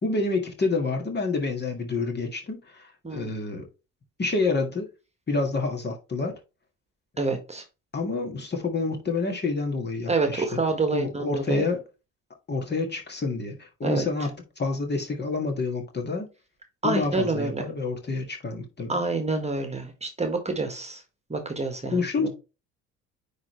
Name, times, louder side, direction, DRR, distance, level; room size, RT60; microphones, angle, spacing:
voice 1, 0.0-3.7 4.2-4.9 5.3-6.3 7.9-10.5 10.9-11.8 12.5-16.3 16.8-19.0 21.9-22.3, left 3 dB, 30° left, 1.9 m, -28 dB
voice 2, 7.2-7.6 10.1-11.6 13.8-14.1 16.8-17.6 18.9-21.0 21.3-22.3, right 3 dB, 15° right, 1.5 m, -27 dB
9.5 x 3.5 x 3.2 m
hypercardioid pair, 55°, 36 cm